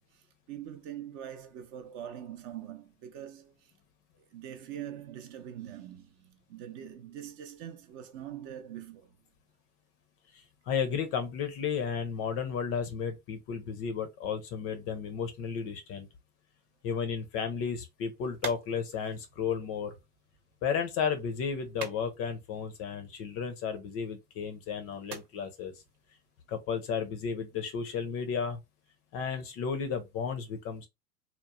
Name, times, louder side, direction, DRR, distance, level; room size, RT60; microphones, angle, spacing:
voice 1, 0.1-3.7 4.2-9.1, right 10 dB, 45° right, 0.6 m, -43 dB
voice 2, 10.3-16.1 16.8-19.9 20.6-25.7 26.5-28.6 29.1-30.9, left 6 dB, 35° left, 0.5 m, -33 dB
sound 1, 17.5-27.2, right 5 dB, 80° right, 1.1 m, -49 dB
2.9 x 2.0 x 2.4 m
hypercardioid pair, 110°, 44 cm